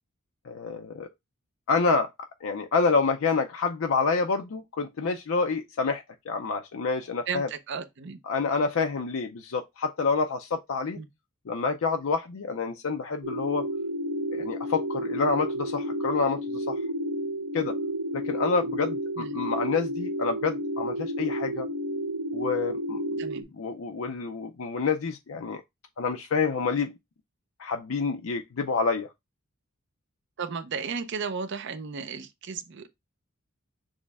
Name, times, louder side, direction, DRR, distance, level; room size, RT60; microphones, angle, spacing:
voice 1, 0.4-1.1 1.7-2.1 2.4-7.5 8.2-11.0 11.5-13.7 14.3-16.8 17.5-17.8 18.1-21.7 22.3-23.0 23.5-25.6 26.0-27.0 27.6-29.1, left 4 dB, 70° left, 0.5 m, -28 dB
voice 2, 7.3-8.2 10.9-11.1 19.2-19.3 23.2-23.5 30.4-32.9, right 5 dB, 55° right, 0.6 m, -34 dB
sound 1, 13.2-23.4, equal, 80° right, 1.2 m, -31 dB
6.2 x 2.1 x 3.4 m
head